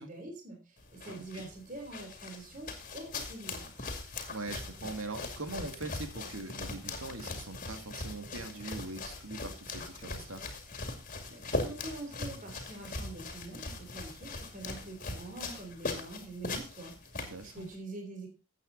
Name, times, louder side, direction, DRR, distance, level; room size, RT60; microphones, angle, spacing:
voice 1, 0.0-3.9 11.3-18.3, right 2 dB, 35° right, 3 dB, 3.2 m, -45 dB
sound 1, 0.8-17.7, left 3 dB, 40° left, 2.4 m, -40 dB
voice 2, 1.0-1.5 4.3-10.4 17.2-17.7, right 2 dB, 75° right, 7 dB, 2.1 m, -42 dB
14.0 x 8.3 x 3.9 m, 0.31 s
head